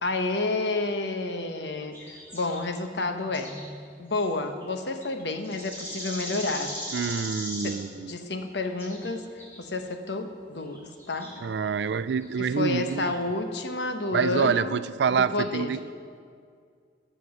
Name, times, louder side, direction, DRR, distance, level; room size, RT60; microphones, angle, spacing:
voice 1, 0.0-3.5 4.0-6.9 7.6-7.8 8.0-9.2 9.6-10.8 11.1-11.3 12.4-14.8 15.1-15.7, left 2 dB, 75° left, 6 dB, 1.0 m, -30 dB
sound 1, 1.9-2.6 3.2-3.7 4.1-4.3 4.6-4.7 5.0-7.9 8.6-9.1 9.4-9.6 10.6-11.4 12.2-12.4 12.9-13.1, equal, 15° left, 3.1 m, -39 dB
voice 2, 6.9-8.1 11.4-13.1 14.1-15.8, right 6 dB, 70° right, 14 dB, 0.4 m, -26 dB
13.0 x 6.1 x 7.0 m, 2.2 s
head